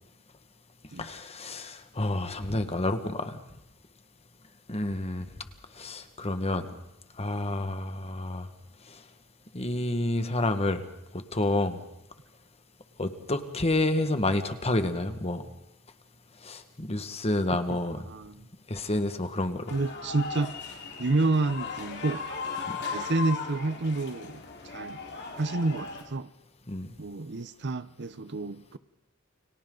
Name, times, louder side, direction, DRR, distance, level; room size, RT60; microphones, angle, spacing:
voice 1, 1.0-3.4 4.7-5.3 5.8-6.7 7.2-8.5 8.9-9.0 9.5-10.8 11.1-11.8 13.0-15.5 16.4-18.0 18.7-19.7 22.7-22.8 26.7-26.9, left 1 dB, 30° left, 8 dB, 1.7 m, -29 dB
voice 2, 18.1-18.5 19.7-20.6 21.0-22.2 22.9-25.0 25.3-26.3 27.0-28.8, right 2 dB, 55° right, 14 dB, 0.8 m, -29 dB
sound 1, 19.7-26.0, left 4 dB, 55° left, 4.2 m, -37 dB
30.0 x 23.5 x 4.0 m, 0.85 s
head